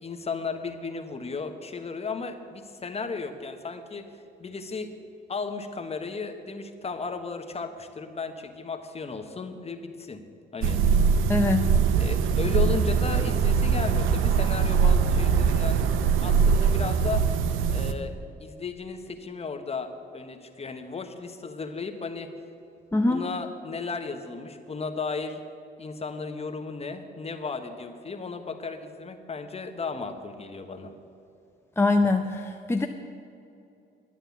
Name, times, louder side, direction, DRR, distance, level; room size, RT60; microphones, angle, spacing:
voice 1, 0.0-4.1 4.4-4.9 5.3-10.2 10.5-10.8 11.9-15.8 16.2-17.2 17.7-18.1 18.4-22.3 23.1-25.4 25.8-30.9, left 4 dB, 30° left, 6 dB, 1.2 m, -35 dB
sound 1, 10.6-17.9, right 6 dB, 90° right, 0.7 m, -22 dB
voice 2, 11.3-11.8 22.9-23.2 31.8-32.9, left 3 dB, 10° left, 4 dB, 0.6 m, -23 dB
11.5 x 9.0 x 7.1 m, 2.6 s
cardioid pair, 90°, 20 cm